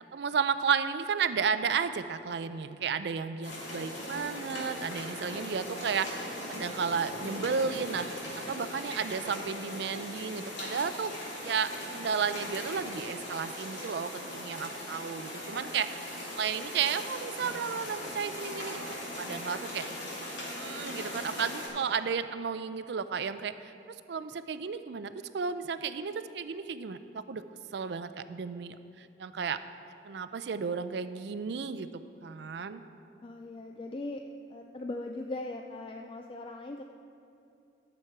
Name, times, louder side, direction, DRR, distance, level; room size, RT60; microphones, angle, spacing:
voice 1, 0.1-11.2 11.4-18.8 19.2-19.9 20.5-23.7 24.1-27.4 27.7-29.6 30.0-31.9 32.2-32.8, right 6 dB, 60° right, 12 dB, 0.4 m, -33 dB
sound 1, 3.4-21.7, left 1 dB, 70° left, 2.7 m, -39 dB
voice 2, 33.2-34.2 34.5-36.8, left 2 dB, 25° left, 3 dB, 0.3 m, -39 dB
12.5 x 7.2 x 4.6 m, 2.6 s
head